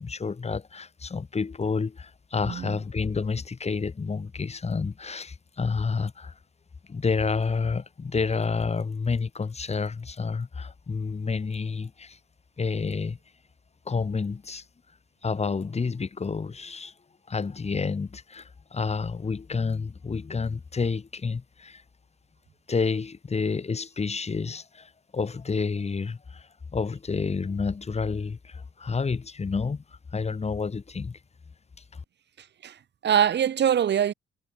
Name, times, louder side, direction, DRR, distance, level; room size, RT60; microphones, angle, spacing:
voice 1, 0.0-6.3 6.9-12.2 12.6-13.2 13.9-14.6 15.2-16.9 17.3-21.8 22.7-29.8 30.1-31.2 31.9-32.0, left 4 dB, 30° left, 4.4 m, -29 dB
voice 2, 2.4-2.8 32.6-32.8 33.0-34.1, right 9 dB, 60° right, 4.0 m, -23 dB
cardioid pair, 90°, 20 cm